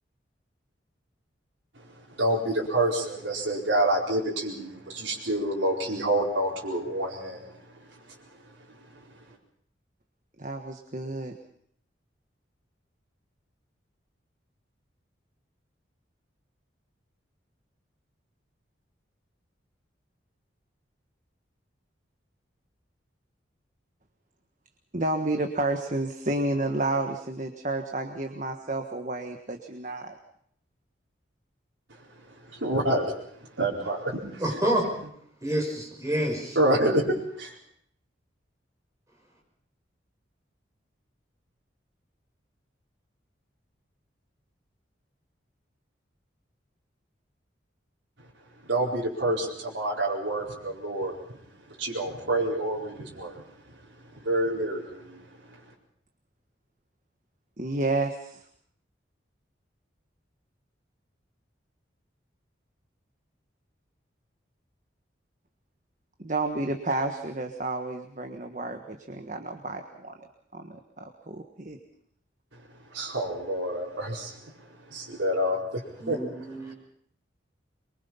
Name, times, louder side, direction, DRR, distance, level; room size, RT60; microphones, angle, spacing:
voice 1, 2.1-7.4 32.5-33.1 33.6-34.4 36.5-37.5 48.6-51.2 51.8-53.4 54.1-55.2 72.9-74.4 74.9-76.2, right 1 dB, 75° right, -5 dB, 4.5 m, -27 dB
voice 2, 10.4-11.4 24.9-30.1 57.6-58.4 66.2-70.2 70.5-71.8, right 2 dB, 40° right, 4 dB, 1.5 m, -31 dB
voice 3, 34.4-34.9 35.4-36.6 76.0-76.7, right 1 dB, 15° right, -1 dB, 6.0 m, -28 dB
24.0 x 23.0 x 5.7 m, 0.67 s
head